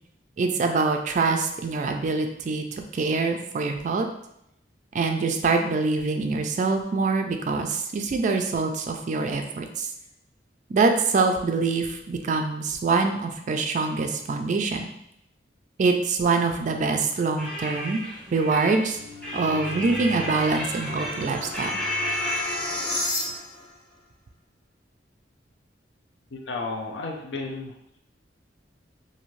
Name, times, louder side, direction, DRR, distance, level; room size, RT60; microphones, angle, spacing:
voice 1, 0.4-2.6 2.9-4.1 4.9-9.9 10.7-14.9 15.8-18.0 18.3-19.0 19.3-21.7, right 4 dB, 45° right, 5 dB, 0.3 m, -24 dB
sound 1, 17.4-23.4, left 1 dB, 5° left, 0.7 m, -33 dB
sound 2, 18.7-23.7, left 2 dB, 50° left, 0.9 m, -33 dB
voice 2, 26.3-28.0, left 3 dB, 75° left, 2 dB, 0.5 m, -33 dB
2.6 x 2.6 x 3.1 m, 0.77 s
head